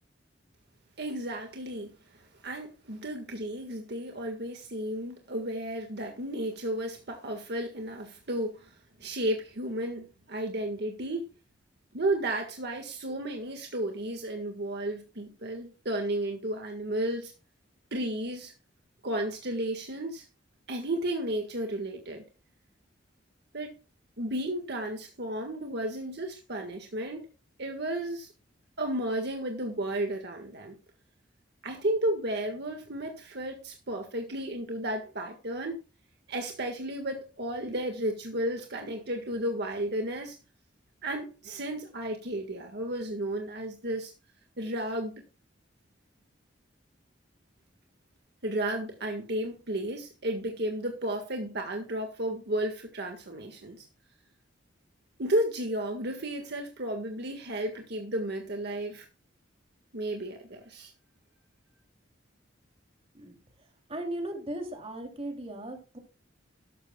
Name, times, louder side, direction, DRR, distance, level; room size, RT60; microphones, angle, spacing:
voice 1, 1.0-11.3 11.9-17.3 17.9-18.5 19.0-20.3 20.7-22.2 23.5-23.7 24.2-27.3 27.6-28.3 28.8-30.8 31.6-35.8 36.3-40.4 41.0-44.1 44.6-45.1 48.4-53.9 55.2-59.1 59.9-60.9, right 1 dB, 60° right, 1.7 m, -33 dB
voice 2, 63.9-66.0, right 1 dB, 30° right, 2.9 m, -37 dB
13.0 x 12.5 x 2.3 m
head